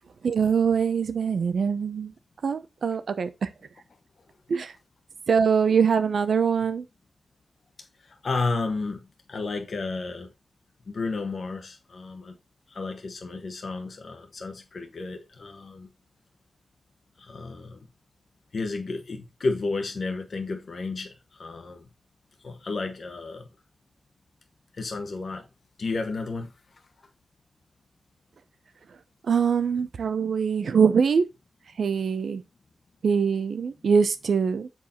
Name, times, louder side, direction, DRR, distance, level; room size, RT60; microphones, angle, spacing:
voice 1, 0.2-2.1 2.4-3.5 4.5-4.7 5.3-6.8 29.3-31.2 31.8-32.4 33.0-34.7, right 6 dB, 85° right, 0.8 m, -23 dB
voice 2, 8.0-10.3 10.9-12.4 12.7-15.9 17.2-17.8 18.5-21.8 22.4-23.5 24.7-25.5 25.8-26.5, left 3 dB, 65° left, 1.3 m, -32 dB
7.3 x 4.7 x 4.3 m
wide cardioid pair, 85°, 0 cm